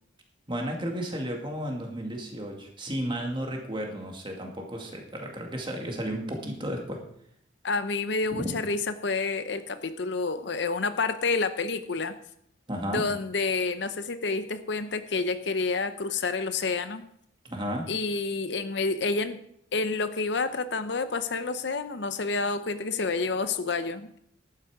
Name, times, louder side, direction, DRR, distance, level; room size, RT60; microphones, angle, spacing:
voice 1, 0.5-7.0 8.3-8.5 12.7-13.1 17.4-17.9, equal, 25° right, 1 dB, 2.0 m, -33 dB
voice 2, 7.6-12.1 12.9-17.0 17.9-19.4 19.7-24.2, left 4 dB, 60° left, 11 dB, 0.7 m, -29 dB
11.5 x 9.2 x 4.8 m, 0.69 s
head